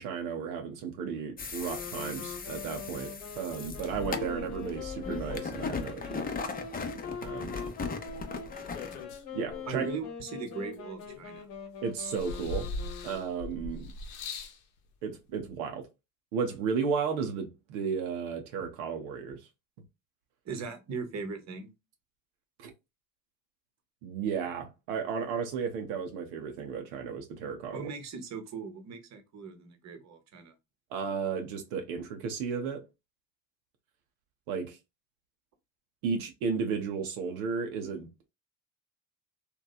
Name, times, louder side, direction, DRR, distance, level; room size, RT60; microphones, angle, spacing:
voice 1, 0.0-6.2 7.2-7.6 9.3-9.9 11.8-12.7 13.0-13.9 15.0-15.9 16.3-19.4 22.6-22.7 24.0-27.9 30.9-32.8 34.5-34.8 36.0-38.3, right 6 dB, 80° right, 0.7 m, -34 dB
sound 1, 1.4-9.0, left 5 dB, 20° left, 0.6 m, -38 dB
sound 2, 1.6-13.5, left 5 dB, 65° left, 1.1 m, -43 dB
sound 3, 8.1-9.9 10.5-11.5 12.0-14.6 15.5-15.6, left 3 dB, 90° left, 0.7 m, -40 dB
voice 2, 9.7-11.5 20.4-21.7 27.7-30.5, right 4 dB, 45° right, 0.9 m, -39 dB
2.8 x 2.3 x 2.2 m
hypercardioid pair, 65°, 40 cm